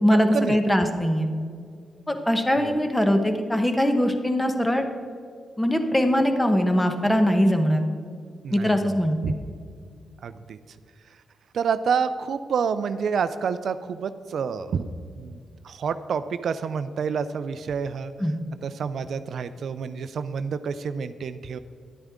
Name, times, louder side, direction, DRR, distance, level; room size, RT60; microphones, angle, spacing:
voice 1, 0.0-1.3 2.1-4.8 5.6-7.8 8.5-9.2 18.2-18.3, equal, 10° left, 6 dB, 1.1 m, -21 dB
voice 2, 8.4-9.0 9.2-9.3 10.2-10.6 11.5-14.9 15.1-15.4 15.6-18.1 18.6-21.6, right 6 dB, 75° right, 12 dB, 0.4 m, -28 dB
10.5 x 8.7 x 3.7 m, 2.2 s
cardioid pair, 80°, 0 cm